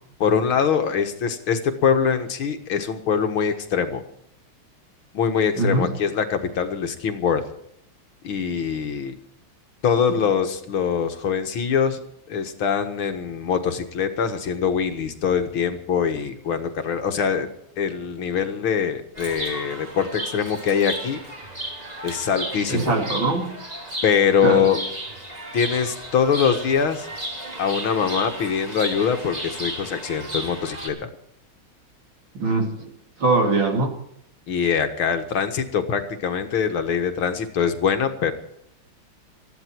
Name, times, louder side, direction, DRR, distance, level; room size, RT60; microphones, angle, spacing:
voice 1, 0.2-4.0 5.1-7.4 8.2-9.1 9.8-12.0 12.3-17.5 17.8-21.2 22.0-22.9 24.0-24.8 25.5-27.1 27.6-31.1 34.5-38.3, left 7 dB, 80° left, 7 dB, 2.4 m, -23 dB
voice 2, 5.6-5.9 22.7-23.5 24.4-24.6 32.3-32.9 33.2-33.9, right 3 dB, 70° right, 3 dB, 3.6 m, -21 dB
Chirp tweet, 19.1-30.9, right 1 dB, 20° right, 3.2 m, -34 dB
20.0 x 14.0 x 4.6 m, 0.72 s
omnidirectional pair, 2.3 m